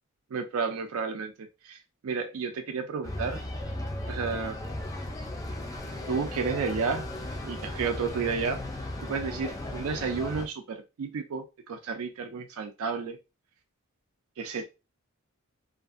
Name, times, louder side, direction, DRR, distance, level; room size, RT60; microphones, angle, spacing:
voice 1, 0.3-1.3 1.6-3.4 4.1-4.6 6.1-7.1 7.4-8.6 9.0-13.2 14.4-14.6, right 5 dB, 75° right, 5 dB, 0.4 m, -31 dB
sound 1, 3.0-10.5, left 1 dB, 15° left, 0.3 m, -36 dB
2.5 x 2.4 x 2.4 m, 0.27 s
head